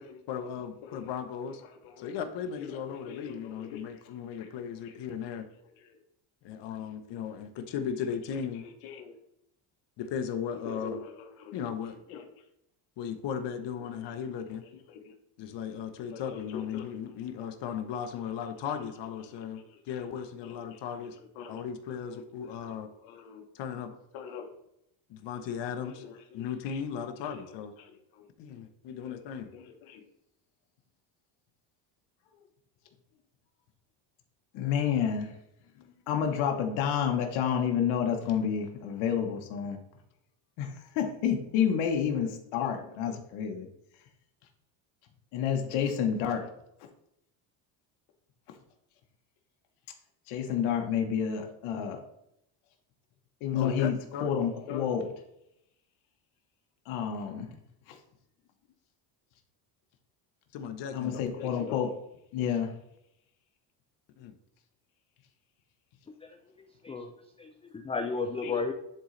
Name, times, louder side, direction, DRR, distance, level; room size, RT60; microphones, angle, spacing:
voice 1, 0.3-1.6 2.0-5.5 6.4-8.6 10.0-11.0 11.5-12.0 13.0-14.6 15.4-21.2 21.5-22.9 23.5-24.0 25.1-26.0 26.3-27.7 28.4-29.5 53.5-54.3 60.5-61.2 64.2-64.3, left 7 dB, 60° left, 7 dB, 1.0 m, -36 dB
voice 2, 8.8-9.1 10.8-11.0 11.5-11.6 16.1-16.2 16.7-16.8 21.4-21.5 23.0-23.4 24.1-24.4 29.5-29.6 29.9-30.0 34.5-35.3 36.1-39.8 40.6-43.7 45.3-46.5 50.3-52.0 53.4-53.9 54.2-55.1 56.9-57.5 60.9-61.9 62.3-62.7 68.4-68.6, left 8 dB, 80° left, 3 dB, 1.2 m, -30 dB
voice 3, 66.1-66.4 66.8-67.1 67.4-68.7, left 4 dB, 15° left, 6 dB, 0.3 m, -33 dB
10.0 x 3.9 x 3.2 m, 0.80 s
cardioid pair, 115°, 47 cm